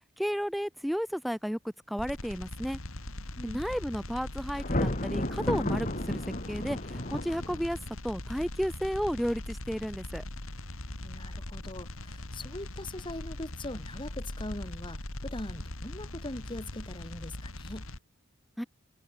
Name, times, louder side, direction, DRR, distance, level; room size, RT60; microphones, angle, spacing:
voice 1, 0.2-2.8 3.4-6.2 6.5-7.8 8.0-10.2 18.6-18.7, equal, ahead, 4.0 m, -33 dB
sound 1, 2.0-18.0, left 1 dB, 80° left, 3.0 m, -41 dB
Thunder, 4.6-7.9, left 1 dB, 40° left, 4.4 m, -32 dB
voice 2, 11.0-17.9, left 1 dB, 25° left, 3.1 m, -41 dB
head